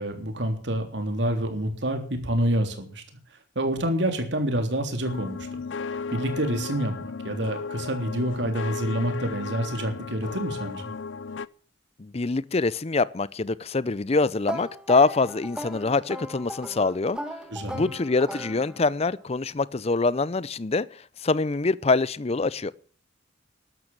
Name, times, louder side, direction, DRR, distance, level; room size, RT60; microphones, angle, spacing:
voice 1, 0.0-3.0 3.5-5.5 6.1-10.8 17.5-17.9, right 1 dB, 65° right, 3.4 m, -27 dB
sound 1, 5.0-11.5, left 5 dB, 85° left, 0.6 m, -35 dB
voice 2, 12.0-17.2 17.7-20.9 21.2-22.7, left 3 dB, 35° left, 0.6 m, -24 dB
sound 2, 14.4-19.1, equal, 5° right, 1.6 m, -37 dB
12.5 x 12.0 x 7.4 m
head